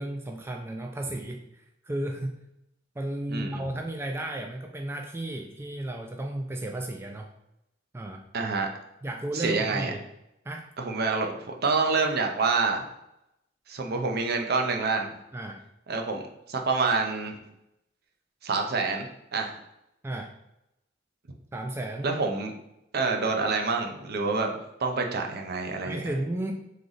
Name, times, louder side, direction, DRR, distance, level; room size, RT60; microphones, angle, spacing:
voice 1, 0.0-2.4 3.0-7.3 7.9-8.2 9.0-10.0 10.4-10.6 15.3-15.6 20.0-20.3 21.5-22.1 25.8-26.5, right 1 dB, 15° right, 2 dB, 0.3 m, -34 dB
voice 2, 3.3-3.6 8.3-8.7 9.3-9.9 10.8-12.8 13.7-15.2 15.9-16.2 16.5-17.4 18.4-19.6 22.0-22.5 22.9-24.5 24.8-26.0, right 4 dB, 55° right, 3 dB, 0.6 m, -27 dB
3.9 x 3.3 x 3.9 m, 0.84 s
head